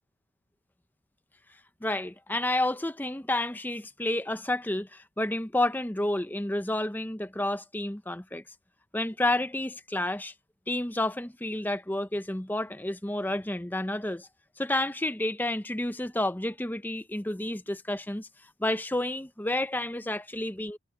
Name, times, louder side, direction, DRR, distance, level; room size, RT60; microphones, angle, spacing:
voice 1, 1.8-8.4 8.9-10.3 10.7-14.3 14.6-18.3 18.6-20.8, left 1 dB, 10° left, 0.6 m, -30 dB
head